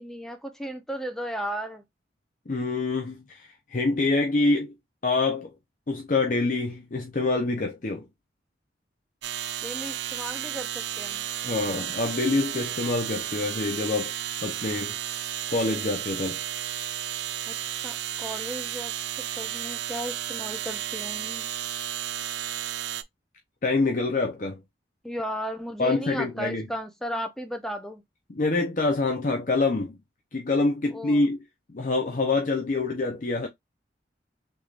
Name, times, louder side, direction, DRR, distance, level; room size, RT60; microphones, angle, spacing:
voice 1, 0.0-1.8 9.6-11.3 17.5-21.5 25.0-28.0 30.9-31.3, equal, ahead, 0.5 m, -35 dB
voice 2, 2.5-4.7 5.0-5.5 5.9-8.1 11.4-14.1 14.4-15.0 15.5-16.4 23.6-24.6 25.8-26.7 28.3-30.0 30.3-31.4 31.7-33.5, left 3 dB, 45° left, 0.6 m, -26 dB
sound 1, 9.2-23.0, right 11 dB, 70° right, 0.4 m, -33 dB
3.6 x 3.1 x 2.4 m
head